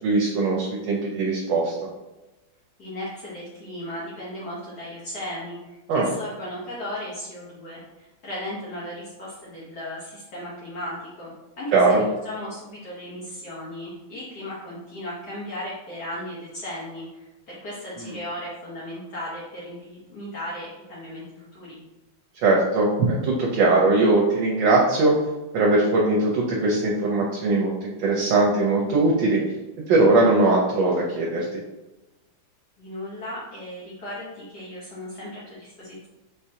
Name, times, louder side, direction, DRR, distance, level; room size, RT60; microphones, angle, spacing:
voice 1, 0.0-1.7 5.9-6.1 11.7-12.0 18.0-18.1 22.4-25.1 25.5-29.4 29.9-31.6, right 2 dB, 80° right, -3 dB, 1.5 m, -20 dB
voice 2, 2.8-11.9 12.2-21.8 32.8-36.1, left 1 dB, 60° left, -7 dB, 1.6 m, -36 dB
4.6 x 3.7 x 2.8 m, 1.0 s
omnidirectional pair, 2.1 m